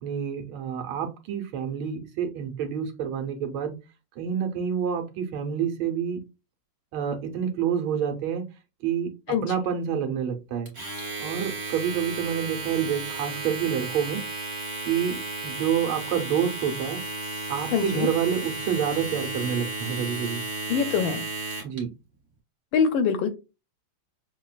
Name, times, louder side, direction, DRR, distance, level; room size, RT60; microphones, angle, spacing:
voice 1, 0.0-3.7 4.2-6.2 6.9-8.4 8.8-9.1 9.4-10.7 11.2-14.2 14.9-17.0 17.5-20.4 21.6-21.9, right 8 dB, 75° right, 4 dB, 1.6 m, -28 dB
Domestic sounds home sounds, 10.7-21.8, right 2 dB, 40° right, 1.5 m, -34 dB
voice 2, 17.7-18.1 20.7-21.2 22.7-23.3, left 6 dB, 75° left, 9 dB, 1.2 m, -24 dB
6.2 x 2.2 x 2.3 m, 0.27 s
omnidirectional pair, 2.4 m